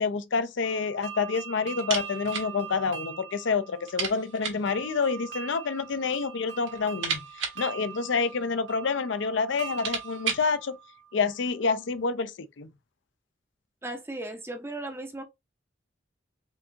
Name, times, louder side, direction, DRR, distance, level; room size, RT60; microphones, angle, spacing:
voice 1, 0.0-10.8 11.1-12.7, left 5 dB, 75° left, 0.5 m, -28 dB
sound 1, 0.6-11.5, right 7 dB, 65° right, 1.2 m, -43 dB
sound 2, 1.8-2.5 2.8-2.9 3.3-3.4 3.8-4.7 5.7-6.2 6.6-8.6 9.2-9.3 9.6-10.5, right 6 dB, 85° right, 1.6 m, -34 dB
voice 2, 13.8-15.2, right 2 dB, 15° right, 0.5 m, -36 dB
4.5 x 2.8 x 2.6 m
head